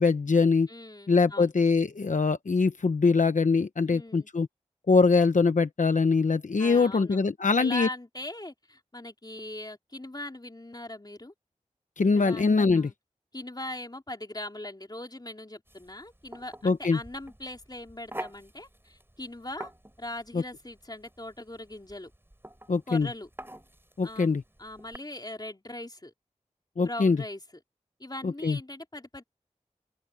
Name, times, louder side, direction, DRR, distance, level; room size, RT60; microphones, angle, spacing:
voice 1, 0.0-0.7 1.1-4.5 4.9-7.9 12.0-12.9 16.6-17.0 20.3-20.4 22.7-23.1 24.0-24.4 26.8-27.2 28.2-28.6, left 4 dB, 80° left, 0.9 m, -23 dB
voice 2, 0.7-1.5 3.9-4.3 6.6-7.2 7.5-11.3 12.0-12.5 12.7-12.9 13.3-19.7 20.0-22.1 22.9-23.3 24.0-26.1 26.8-27.4 28.0-29.2, left 1 dB, 30° left, 4.0 m, -40 dB
sound 1, 15.7-25.0, right 1 dB, 15° right, 6.2 m, -46 dB
open air
wide cardioid pair, 45°, 13 cm